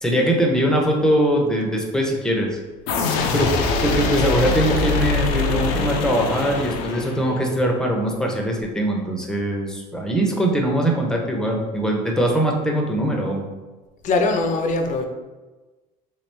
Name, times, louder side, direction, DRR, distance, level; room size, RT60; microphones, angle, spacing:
voice 1, 0.0-2.6 3.3-3.5 3.8-13.4, right 1 dB, 5° left, 0 dB, 0.7 m, -21 dB
sound 1, 2.9-7.5, left 3 dB, 85° left, 0.6 m, -23 dB
voice 2, 14.0-15.0, left 3 dB, 45° left, 5 dB, 0.6 m, -21 dB
3.4 x 3.1 x 3.3 m, 1.2 s
supercardioid pair, 110°, 18 cm